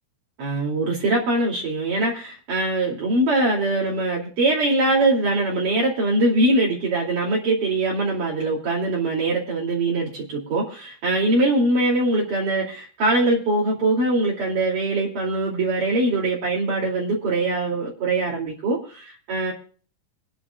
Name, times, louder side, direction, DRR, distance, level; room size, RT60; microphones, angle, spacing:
voice 1, 0.4-19.5, right 2 dB, 60° right, -4 dB, 4.2 m, -22 dB
26.5 x 9.9 x 2.3 m, 0.41 s
omnidirectional pair, 4.5 m